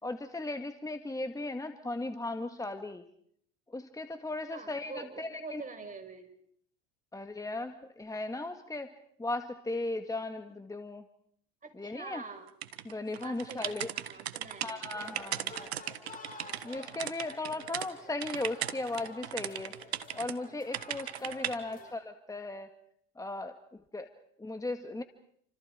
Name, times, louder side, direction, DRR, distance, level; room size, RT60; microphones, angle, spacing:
voice 1, 0.0-3.0 3.7-5.6 7.1-8.9 9.2-11.0 11.8-12.2 12.8-13.9 14.6-15.7 16.6-19.7 20.1-22.7 23.2-24.1 24.4-25.0, left 2 dB, 10° left, 7 dB, 1.8 m, -37 dB
voice 2, 4.5-6.3 11.6-12.5 13.2-14.9 15.4-15.6 17.5-17.6 17.9-18.1 21.5-21.9, right 4 dB, 25° right, 6 dB, 6.0 m, -46 dB
sound 1, 12.6-17.9 18.2-20.3 20.7-21.6, right 11 dB, 90° right, 1.4 m, -37 dB
sound 2, 14.9-21.9, left 3 dB, 25° left, 7.4 m, -50 dB
29.0 x 26.5 x 4.9 m, 0.66 s
hypercardioid pair, 75°, 31 cm